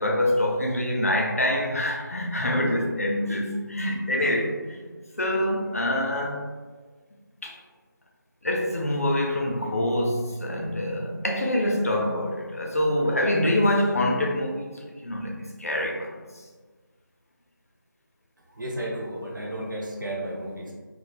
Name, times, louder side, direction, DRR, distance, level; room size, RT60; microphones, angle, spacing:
voice 1, 0.0-4.8 5.2-6.4 7.4-7.6 8.4-16.1, left 1 dB, 45° left, 0.4 m, -25 dB
voice 2, 18.5-20.7, right 1 dB, 65° right, 0.7 m, -33 dB
3.3 x 2.0 x 2.4 m
figure-of-eight pair, 165°, 11 cm